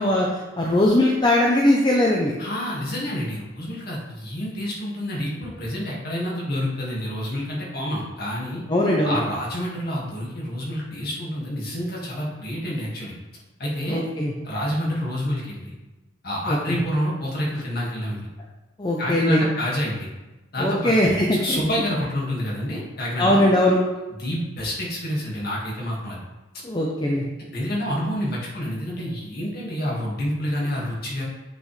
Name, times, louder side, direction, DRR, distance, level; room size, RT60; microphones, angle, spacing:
voice 1, 0.0-2.3 8.7-9.2 13.9-14.3 16.5-16.8 18.8-19.4 20.6-21.6 23.2-23.8 26.6-27.2, left 1 dB, 20° left, -2 dB, 0.7 m, -20 dB
voice 2, 2.4-8.6 9.0-13.1 13.6-14.0 14.4-15.7 16.2-18.2 19.0-20.1 20.5-21.2 21.4-23.4 24.2-26.2 27.5-31.2, equal, 50° left, -4 dB, 2.0 m, -28 dB
7.8 x 6.1 x 3.3 m, 1.1 s
head